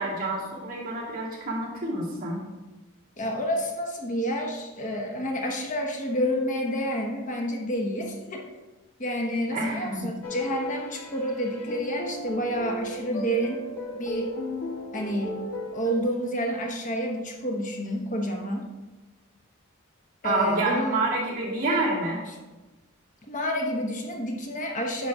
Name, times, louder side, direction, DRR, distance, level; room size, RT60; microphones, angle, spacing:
voice 1, 0.0-2.4 9.5-10.1 20.2-22.2, right 2 dB, 40° right, -6 dB, 2.6 m, -28 dB
voice 2, 3.2-8.5 9.0-13.6 14.0-14.3 14.9-15.4 15.7-18.7 20.2-21.0 23.3-25.1, equal, 35° left, 1 dB, 0.9 m, -29 dB
sound 1, 10.2-16.0, equal, 85° left, 1.6 m, -36 dB
10.5 x 5.6 x 3.6 m, 1.1 s
head